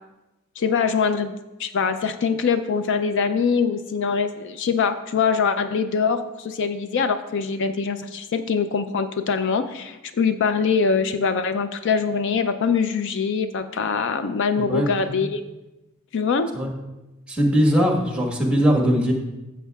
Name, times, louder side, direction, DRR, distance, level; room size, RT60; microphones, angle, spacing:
voice 1, 0.6-15.4 16.1-16.5, left 5 dB, 55° left, 10 dB, 0.4 m, -23 dB
voice 2, 14.6-15.3 16.5-16.7 17.3-19.1, equal, 5° right, 1 dB, 1.3 m, -21 dB
13.5 x 7.4 x 2.3 m, 1.0 s
head